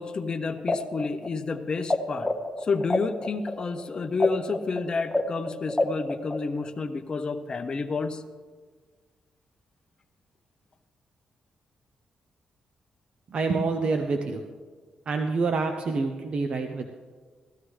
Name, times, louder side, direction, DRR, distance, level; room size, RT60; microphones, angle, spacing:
voice 1, 0.0-2.3 2.6-8.2, left 4 dB, 40° left, 6 dB, 0.6 m, -30 dB
sound 1, 0.6-2.0 2.2-6.7, left 2 dB, 5° left, 0.9 m, -27 dB
voice 2, 13.3-14.4 15.1-16.9, right 4 dB, 55° right, 5 dB, 0.7 m, -27 dB
16.0 x 12.5 x 3.2 m, 1.5 s
cardioid pair, 105°, 2 cm